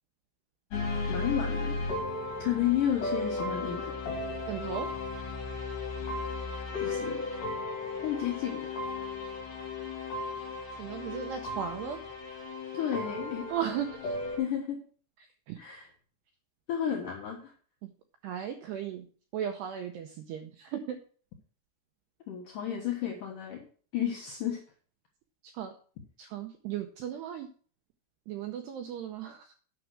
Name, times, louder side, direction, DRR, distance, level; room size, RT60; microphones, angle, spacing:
sound 1, 0.7-14.4, left 3 dB, 45° left, 4.2 m, -35 dB
voice 1, 1.1-1.8 2.4-3.9 6.8-7.2 8.0-8.7 12.7-13.5 14.4-14.8 15.6-15.9 16.7-17.5 22.3-23.7 23.9-24.6, left 10 dB, 80° left, 0 dB, 1.9 m, -32 dB
voice 2, 4.5-4.9 8.0-8.4 10.8-12.0 13.5-14.1 15.5-15.6 17.8-17.9 18.2-19.1 19.3-21.0 25.4-25.7 26.2-27.5 28.3-29.5, right 9 dB, 85° right, 5 dB, 2.3 m, -36 dB
9.7 x 6.1 x 6.4 m, 0.43 s
omnidirectional pair, 5.9 m